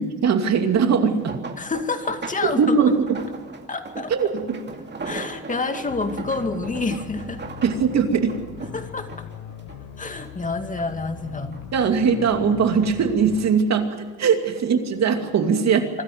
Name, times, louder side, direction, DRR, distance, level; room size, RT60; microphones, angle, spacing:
voice 1, 0.0-1.4 2.4-3.2 4.1-4.6 7.6-8.4 11.7-15.9, right 6 dB, 60° right, 5 dB, 2.6 m, -20 dB
sound 1, 0.9-10.5 10.9-11.8 12.2-13.6 14.3-14.6 15.0-15.1, right 4 dB, 35° right, 2.4 m, -39 dB
voice 2, 1.6-2.8 3.7-4.1 5.0-7.4 8.7-9.2 10.0-11.5, left 3 dB, 25° left, 7 dB, 2.3 m, -28 dB
sound 2, 5.9-13.5, left 9 dB, 85° left, 1.4 m, -40 dB
25.0 x 13.0 x 9.4 m, 1.3 s
cardioid pair, 90°, 30 cm